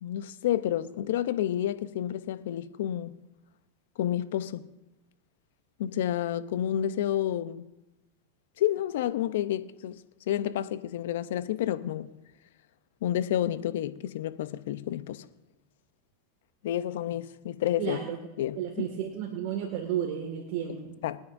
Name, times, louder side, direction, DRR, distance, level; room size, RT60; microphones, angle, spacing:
voice 1, 0.0-3.1 4.0-4.6 5.8-7.6 8.6-10.0 10.3-12.1 13.0-15.3 16.6-18.0 18.4-18.8 21.0-21.2, left 11 dB, 75° left, 0.7 m, -30 dB
voice 2, 17.8-18.2 18.6-21.0, right 9 dB, 60° right, 2.0 m, -32 dB
26.0 x 9.5 x 2.7 m
hypercardioid pair, 110°, 0 cm